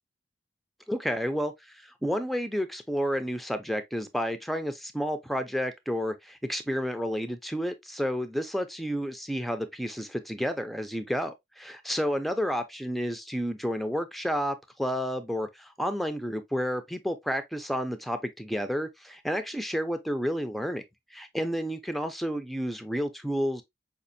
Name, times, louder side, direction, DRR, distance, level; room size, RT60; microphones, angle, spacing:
voice 1, 0.9-20.8 21.1-23.6, equal, ahead, 0.4 m, -31 dB
5.1 x 2.5 x 2.5 m
head